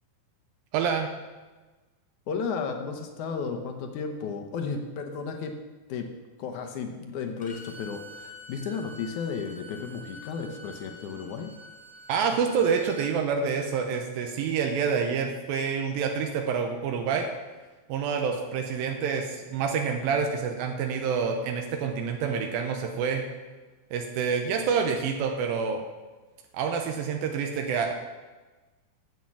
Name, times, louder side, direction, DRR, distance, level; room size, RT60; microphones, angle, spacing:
voice 1, 0.7-1.1 12.1-17.3 17.9-23.2 23.9-25.8 26.5-27.9, right 6 dB, 85° right, 3 dB, 2.7 m, -27 dB
voice 2, 2.3-5.5 5.9-6.1 6.4-11.5, left 5 dB, 70° left, 5 dB, 2.1 m, -33 dB
Bowed string instrument, 7.4-13.1, left 1 dB, 5° left, 1.4 m, -47 dB
9.4 x 8.0 x 7.1 m, 1.3 s
omnidirectional pair, 4.1 m